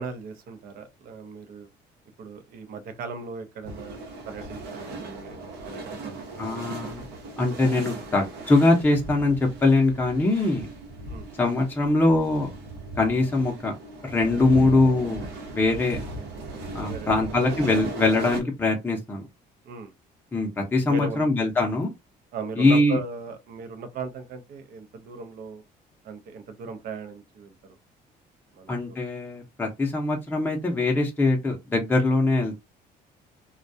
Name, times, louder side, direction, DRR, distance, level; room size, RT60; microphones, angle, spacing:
voice 1, 0.0-1.7 2.2-4.0 4.3-6.6 11.1-11.3 16.8-17.6 19.7-19.9 20.9-21.3 22.3-25.6 26.0-27.5 28.5-29.0, right 4 dB, 60° right, 0.6 m, -38 dB
sound 1, 3.6-18.4, right 2 dB, 80° right, 0.9 m, -37 dB
voice 2, 6.4-7.0 7.4-9.4 9.6-10.7 11.4-12.5 13.0-13.7 14.0-15.2 15.5-16.0 16.7-19.2 20.3-21.9 22.6-23.0 28.7-32.6, left 2 dB, 10° left, 0.6 m, -22 dB
2.2 x 2.2 x 2.5 m
cardioid pair, 110°, 17 cm